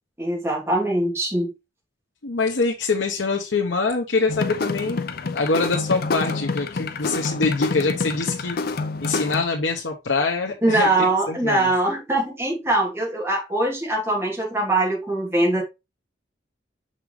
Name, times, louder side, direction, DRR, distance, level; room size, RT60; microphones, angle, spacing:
voice 1, 0.2-1.5 10.6-15.6, right 2 dB, 15° right, 2.8 m, -22 dB
voice 2, 2.2-5.0 5.3-11.7, left 3 dB, 90° left, 1.0 m, -24 dB
sound 1, 4.3-9.4, left 3 dB, 55° left, 0.5 m, -27 dB
6.3 x 5.4 x 3.2 m
head